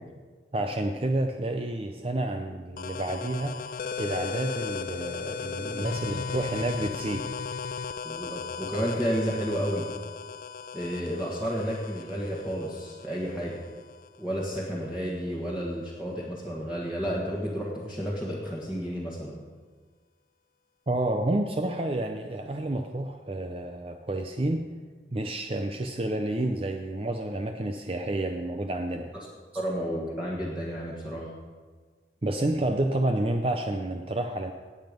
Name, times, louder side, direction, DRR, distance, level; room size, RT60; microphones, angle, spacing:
voice 1, 0.5-7.2 20.9-24.6 25.1-29.1 32.2-34.5, right 1 dB, 35° right, 5 dB, 0.6 m, -29 dB
sound 1, 2.8-14.2, left 5 dB, 50° left, 0.4 m, -36 dB
voice 2, 8.0-9.9 10.7-13.6 14.2-19.4 29.5-31.3, equal, 5° right, -6 dB, 1.6 m, -31 dB
18.0 x 7.9 x 5.2 m, 1.5 s
head